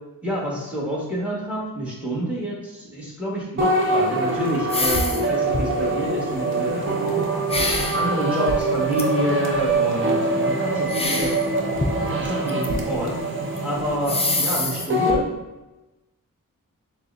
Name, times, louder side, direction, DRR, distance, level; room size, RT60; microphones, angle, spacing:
voice 1, 0.2-7.1 7.9-11.3 12.0-13.2 13.6-15.3, right 1 dB, 5° right, -4 dB, 1.3 m, -28 dB
sound 1, 3.6-15.2, right 2 dB, 35° right, 0.7 m, -24 dB
sound 2, 4.7-5.3 5.5-5.9 7.5-8.0 8.9-9.0 10.9-11.4 11.7-12.6 12.9-13.0 13.6-13.7 14.1-14.9, left 2 dB, 20° left, 0.4 m, -25 dB
6.5 x 2.2 x 2.5 m, 1.0 s
wide cardioid pair, 70°, 34 cm